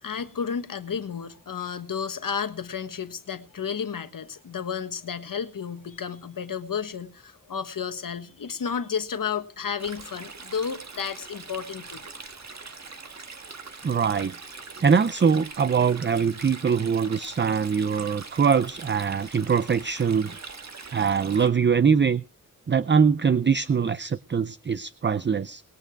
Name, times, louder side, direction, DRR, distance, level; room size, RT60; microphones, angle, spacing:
voice 1, 0.0-12.0, left 7 dB, 70° left, 1.4 m, -32 dB
Stream, 9.8-21.5, right 4 dB, 50° right, 1.8 m, -42 dB
voice 2, 13.8-14.3 14.8-20.4 20.9-22.2 22.7-25.6, right 6 dB, 35° right, 0.5 m, -23 dB
20.5 x 9.0 x 4.6 m
wide cardioid pair, 105°, 34 cm